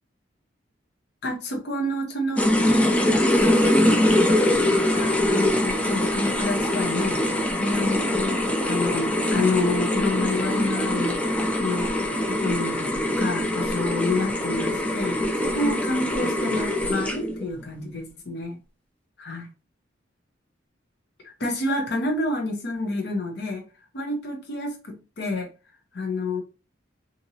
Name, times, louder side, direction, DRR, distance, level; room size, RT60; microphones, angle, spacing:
voice 1, 1.2-2.6 2.9-11.2 11.6-11.9 12.3-18.6 19.2-19.5 21.4-23.7 23.9-25.5 25.9-26.4, left 2 dB, 60° left, 0.7 m, -29 dB
sound 1, 2.4-17.4, left 1 dB, 5° left, 0.3 m, -23 dB
2.8 x 2.6 x 2.7 m
head